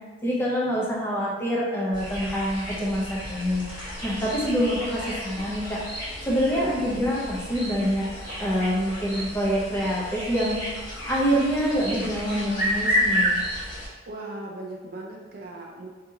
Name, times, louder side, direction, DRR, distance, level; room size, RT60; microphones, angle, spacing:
voice 1, 0.2-3.6 4.0-5.8 6.3-8.0 8.4-10.6 11.1-13.4, equal, 10° left, -5 dB, 0.6 m, -26 dB
sound 1, 1.9-13.9, equal, 45° left, 1.2 m, -31 dB
voice 2, 6.6-7.1 14.1-15.9, right 2 dB, 45° right, 0 dB, 0.4 m, -38 dB
2.8 x 2.7 x 3.6 m, 1.3 s
head